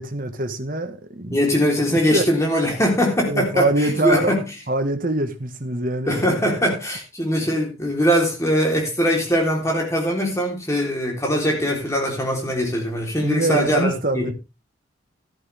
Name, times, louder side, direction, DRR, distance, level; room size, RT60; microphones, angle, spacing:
voice 1, 0.0-1.4 1.9-2.2 3.3-6.7 13.2-14.3, right 2 dB, 45° right, 1.5 m, -24 dB
voice 2, 1.3-4.4 6.1-14.3, equal, 15° left, 3.6 m, -21 dB
13.5 x 11.0 x 3.5 m
head